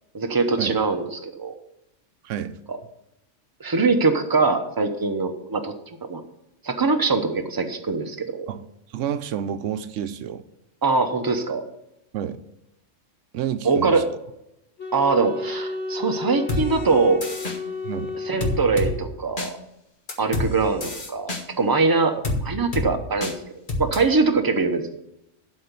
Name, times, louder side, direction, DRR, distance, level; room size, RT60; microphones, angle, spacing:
voice 1, 0.1-1.5 2.7-2.8 3.6-5.7 6.1-6.2 6.6-8.5 10.8-11.6 13.6-14.1 14.9-17.2 18.2-19.6 20.2-22.2 22.4-23.3 23.8-24.8, right 4 dB, 20° right, 5 dB, 0.9 m, -22 dB
voice 2, 2.2-2.6 8.5-8.6 8.9-10.4 12.1-12.4 13.3-14.0 17.8-18.2, right 9 dB, 85° right, 11 dB, 1.0 m, -29 dB
Wind instrument woodwind instrument, 14.8-19.2, left 3 dB, 65° left, 2.1 m, -33 dB
sound 1, 16.5-16.6 17.2-17.6 18.4-18.9 19.4-19.5 20.1-20.5 20.8-21.4 22.2-22.4 22.7-22.9 23.2-23.3 23.7-24.0, left 2 dB, 40° left, 1.6 m, -26 dB
12.0 x 4.4 x 8.2 m, 0.84 s
omnidirectional pair, 1.3 m